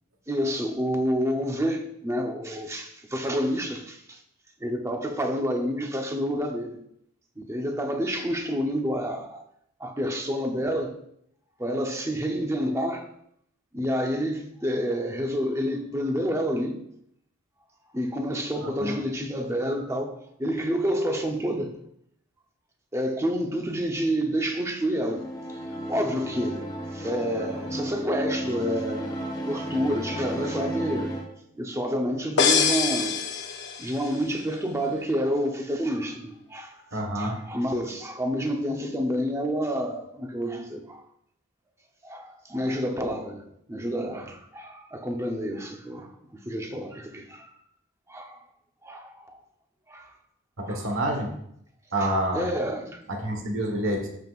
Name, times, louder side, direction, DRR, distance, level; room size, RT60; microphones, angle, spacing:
voice 1, 0.3-4.2 4.6-6.7 7.4-9.4 9.8-11.0 11.6-13.1 13.7-16.8 17.9-21.8 22.9-25.6 25.9-26.6 26.9-29.1 29.5-31.1 31.5-33.1 33.8-36.9 37.1-41.0 42.0-47.5 48.1-48.4 48.8-49.4 49.9-50.1 50.6-50.9 52.0-53.0, equal, 15° right, 0.8 m, -29 dB
sound 1, 24.9-31.3, right 1 dB, 20° left, 0.9 m, -33 dB
sound 2, 32.4-34.2, left 6 dB, 55° left, 0.7 m, -24 dB
voice 2, 36.9-37.3 50.6-51.3 51.9-52.5 53.1-54.1, right 1 dB, 65° right, 1.4 m, -27 dB
14.0 x 5.5 x 2.5 m
head